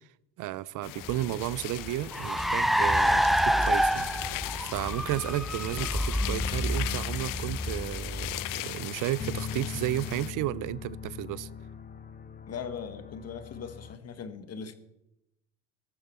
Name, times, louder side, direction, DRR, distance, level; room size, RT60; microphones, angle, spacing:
voice 1, 0.4-11.5, right 15 dB, 60° right, 0.6 m, -33 dB
sound 1, 0.8-10.3, left 17 dB, 70° left, 0.6 m, -38 dB
Car, 1.1-8.8, equal, ahead, 0.4 m, -28 dB
sound 2, 2.3-14.0, left 6 dB, 25° left, 0.8 m, -42 dB
voice 2, 12.5-14.7, left 6 dB, 45° left, 1.4 m, -40 dB
20.0 x 6.8 x 4.3 m
supercardioid pair, 70°, 35 cm